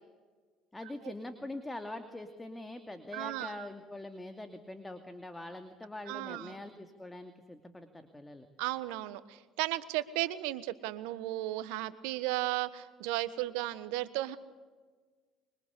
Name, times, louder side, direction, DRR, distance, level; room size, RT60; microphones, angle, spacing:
voice 1, 0.7-8.5, left 2 dB, 10° left, 7 dB, 2.5 m, -43 dB
voice 2, 3.1-3.7 6.1-6.6 8.6-14.4, right 16 dB, 75° right, 14 dB, 1.3 m, -35 dB
25.5 x 24.0 x 8.3 m, 1.4 s
hypercardioid pair, 65°, 0 cm